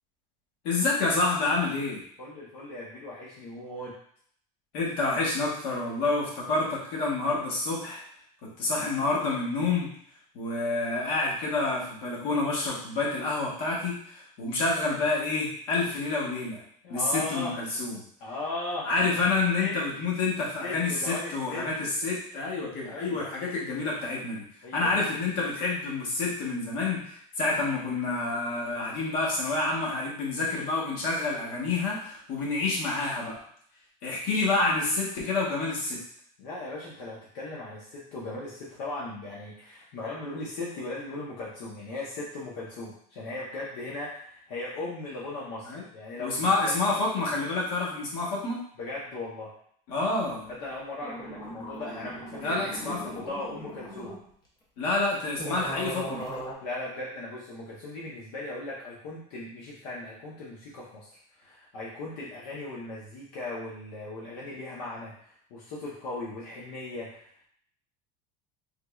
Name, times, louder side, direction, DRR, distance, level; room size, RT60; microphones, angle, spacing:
voice 1, 0.6-2.0 4.7-8.0 8.4-9.9 10.3-16.6 16.9-18.0 18.8-24.4 24.7-33.4 34.0-36.0 45.7-45.8 46.2-48.6 49.9-50.5 52.4-53.0 54.8-56.2, left 3 dB, 55° left, -4 dB, 1.2 m, -28 dB
voice 2, 2.2-3.9 16.8-17.5 18.2-18.9 19.5-19.8 20.6-21.7 22.8-23.3 24.6-24.9 36.4-46.8 48.8-49.5 50.5-54.2 56.6-67.5, left 2 dB, 75° left, -5 dB, 0.9 m, -38 dB
sound 1, 50.7-50.8 51.0-54.2 54.9-55.0 55.4-56.5, right 1 dB, 20° left, 0.6 m, -39 dB
3.6 x 3.1 x 2.3 m, 0.62 s
cardioid pair, 175°, 20 cm